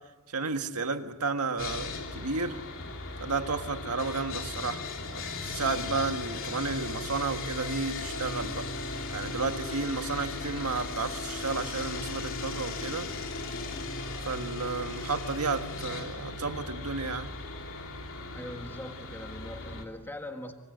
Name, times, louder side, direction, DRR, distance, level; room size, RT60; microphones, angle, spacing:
voice 1, 0.3-2.6 3.2-8.7 9.1-13.1 14.2-17.3, right 4 dB, 85° right, 1.7 m, -32 dB
Sawing, 1.6-19.8, left 3 dB, 60° left, 3.1 m, -37 dB
voice 2, 18.3-20.5, left 1 dB, 10° left, 1.6 m, -41 dB
25.5 x 25.5 x 8.1 m
head